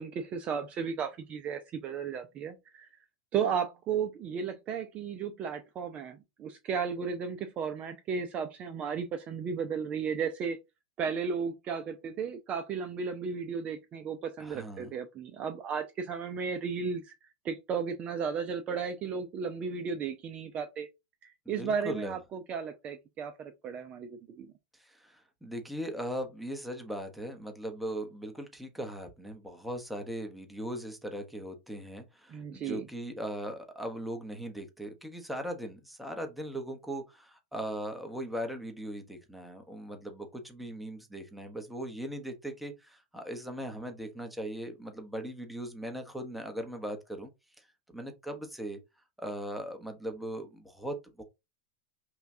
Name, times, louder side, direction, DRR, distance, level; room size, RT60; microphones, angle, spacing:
voice 1, 0.0-2.9 3.3-10.6 11.0-17.1 17.4-20.9 21.5-24.5 32.3-32.9, right 6 dB, 30° right, 0.5 m, -34 dB
voice 2, 14.4-14.9 21.5-22.2 24.8-47.3 47.6-47.7 47.9-48.8 49.2-51.2, right 1 dB, ahead, 0.9 m, -39 dB
5.6 x 2.3 x 2.7 m
hypercardioid pair, 125°, 4 cm